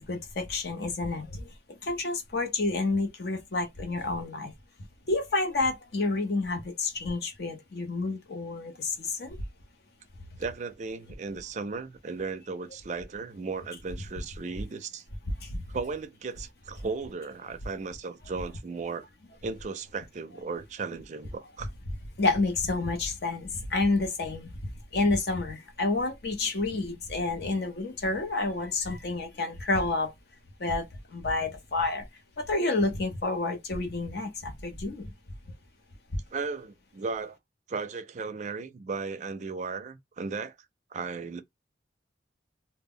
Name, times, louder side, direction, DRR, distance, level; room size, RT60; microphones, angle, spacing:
voice 1, 0.0-4.5 5.1-9.4 15.4-15.6 22.2-24.5 24.9-30.1 30.6-32.1 32.4-35.1 36.1-36.2, left 3 dB, 60° left, 0.7 m, -29 dB
voice 2, 10.4-15.0 15.7-19.1 19.4-21.7 26.4-26.5 36.3-37.4 37.7-40.6 40.9-41.4, right 4 dB, 40° right, 0.4 m, -36 dB
2.1 x 2.1 x 3.6 m
head